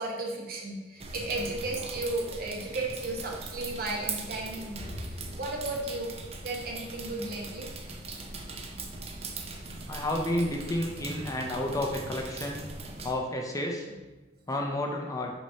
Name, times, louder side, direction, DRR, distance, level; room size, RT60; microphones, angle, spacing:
voice 1, 0.0-6.1 6.4-7.7 9.7-9.9, right 2 dB, 55° right, -1 dB, 1.1 m, -34 dB
sound 1, 1.0-13.1, right 3 dB, 35° right, 0.6 m, -40 dB
voice 2, 9.9-12.6 13.0-13.9 14.5-15.3, left 1 dB, 20° left, 1 dB, 0.6 m, -31 dB
6.1 x 3.0 x 5.4 m, 1.2 s
head